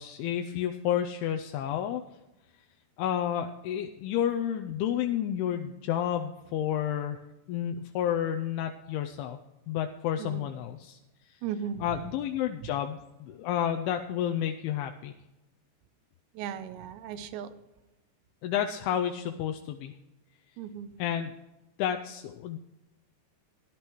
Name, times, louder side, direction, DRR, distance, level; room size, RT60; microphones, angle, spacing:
voice 1, 0.0-2.0 3.0-7.2 7.5-9.4 9.7-11.0 11.3-11.4 11.8-15.1 18.4-19.9 21.0-21.3 21.8-22.6, left 10 dB, 80° left, 5 dB, 2.4 m, -30 dB
voice 2, 10.2-10.5 11.4-11.8 16.3-17.6 20.6-20.9, right 8 dB, 90° right, 10 dB, 2.9 m, -37 dB
18.5 x 11.0 x 3.0 m, 1.0 s
omnidirectional pair, 4.9 m